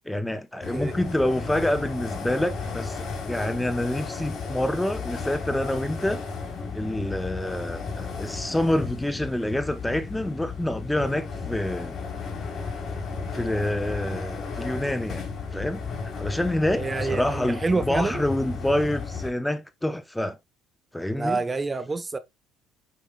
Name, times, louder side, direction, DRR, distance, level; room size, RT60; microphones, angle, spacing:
voice 1, 0.1-6.2 6.7-11.9 13.3-15.8 16.2-20.4 20.9-21.4, left 1 dB, 5° left, 0.8 m, -27 dB
sound 1, 0.6-19.3, left 4 dB, 45° left, 3.7 m, -34 dB
sound 2, 6.4-16.5, left 5 dB, 25° left, 1.2 m, -47 dB
voice 2, 16.7-18.2 21.1-22.2, right 3 dB, 20° right, 0.9 m, -27 dB
8.4 x 5.4 x 2.3 m
supercardioid pair, 95°, 0 cm